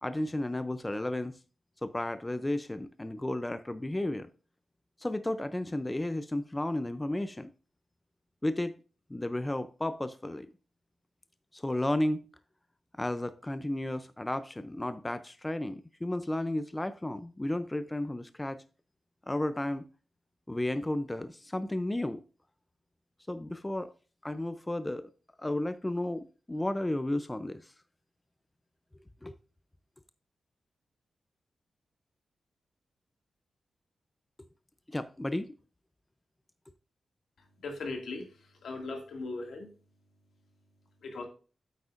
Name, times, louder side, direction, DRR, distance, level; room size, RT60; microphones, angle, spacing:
voice 1, 0.0-1.4 1.8-4.3 5.0-7.5 8.4-8.7 9.1-10.5 11.5-12.3 13.0-18.6 19.3-19.9 20.5-22.2 23.3-23.9 24.2-25.1 25.4-27.7 29.2-29.4 34.9-35.6, left 1 dB, 15° left, 0.5 m, -33 dB
voice 2, 37.6-38.3 38.6-39.7 41.0-41.2, left 3 dB, 80° left, 2.1 m, -38 dB
9.2 x 8.1 x 2.5 m
cardioid pair, 90°, 0 cm